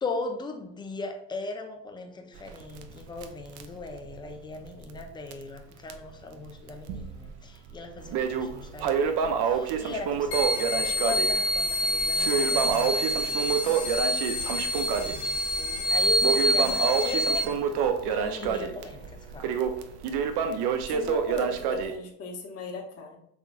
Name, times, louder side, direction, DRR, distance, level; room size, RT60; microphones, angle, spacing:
voice 1, 0.0-14.0 14.6-17.9 18.4-19.6, left 3 dB, 10° left, 0.4 m, -39 dB
Crackle, 2.4-5.1 5.3-5.4 5.9-6.0 6.7-7.3 7.7-21.9, right 6 dB, 55° right, 0.6 m, -28 dB
sound 1, 10.3-17.4, left 1 dB, 75° left, 1.4 m, -26 dB
voice 2, 18.0-18.7 20.9-23.2, left 3 dB, 30° left, 0.9 m, -38 dB
3.7 x 3.2 x 2.4 m
hypercardioid pair, 75°, 48 cm